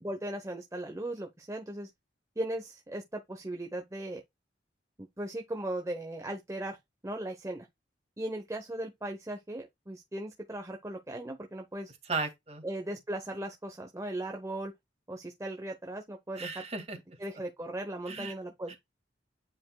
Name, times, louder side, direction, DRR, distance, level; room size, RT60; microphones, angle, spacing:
voice 1, 0.0-1.9 2.4-4.2 5.0-6.8 7.0-7.7 8.2-11.9 12.6-14.7 15.1-16.6 17.2-18.7, right 1 dB, 15° right, 0.9 m, -38 dB
voice 2, 12.1-12.6 16.4-17.0 18.1-18.3 18.7-18.8, right 4 dB, 35° right, 2.1 m, -35 dB
9.6 x 5.2 x 2.3 m
head